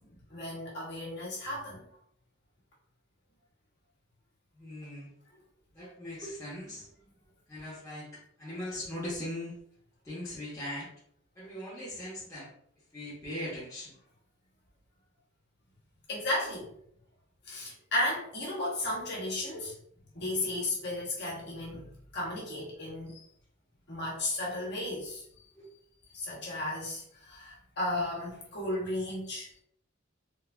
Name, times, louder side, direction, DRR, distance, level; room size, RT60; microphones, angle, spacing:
voice 1, 0.3-1.8 16.1-16.7 17.5-19.7 20.1-21.9 22.1-23.2 23.9-25.2 26.1-29.5, left 1 dB, 55° left, -5 dB, 1.2 m, -34 dB
voice 2, 4.5-5.1 5.7-6.9 7.5-9.5 10.0-10.9 11.3-12.5 12.9-14.0 25.5-25.7, left 1 dB, 15° left, -10 dB, 0.9 m, -40 dB
3.7 x 2.6 x 2.2 m, 0.66 s
head